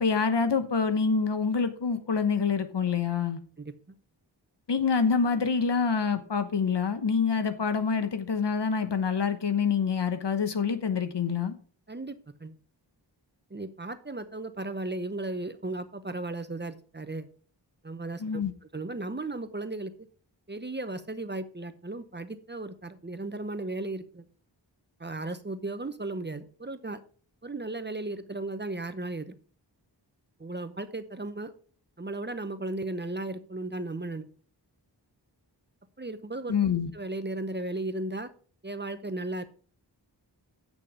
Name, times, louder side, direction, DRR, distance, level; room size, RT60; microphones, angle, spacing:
voice 1, 0.0-3.4 4.7-11.5 18.2-18.5 36.5-36.9, left 5 dB, 70° left, 1.1 m, -26 dB
voice 2, 3.6-4.0 11.9-12.5 13.5-17.3 17.8-18.4 18.7-19.9 20.5-24.3 25.0-27.0 27.4-29.4 30.4-31.5 32.0-34.3 36.0-36.6 36.9-38.3 38.6-39.4, right 2 dB, 25° right, 0.8 m, -35 dB
8.5 x 6.3 x 4.9 m
wide cardioid pair, 60°, 43 cm